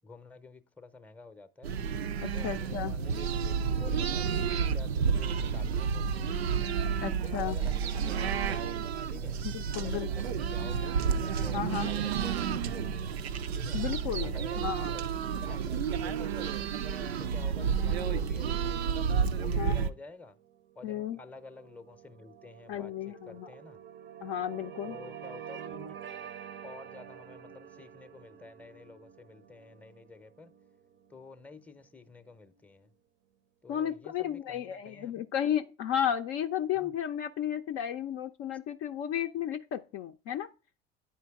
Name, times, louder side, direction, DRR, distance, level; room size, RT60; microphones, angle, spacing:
voice 1, 0.0-1.8 2.3-6.6 7.2-8.8 9.1-9.4 9.7-11.0 11.4-13.1 13.6-13.8 14.2-16.5 17.0-19.0 19.3-20.4 20.8-23.8 24.8-26.0 26.6-30.5 31.1-32.9 33.6-35.3 36.7-36.9, left 3 dB, 5° left, 0.7 m, -50 dB
sound 1, 1.6-19.9, right 6 dB, 85° right, 0.5 m, -31 dB
voice 2, 2.2-3.0 7.0-7.6 9.4-10.1 11.5-11.9 13.7-14.9 19.6-19.8 20.8-21.2 22.7-23.5 24.2-25.0 33.7-40.5, left 10 dB, 45° left, 0.5 m, -33 dB
sound 2, 20.1-32.5, right 8 dB, 40° right, 0.6 m, -48 dB
9.4 x 4.5 x 3.5 m
hypercardioid pair, 70°, 31 cm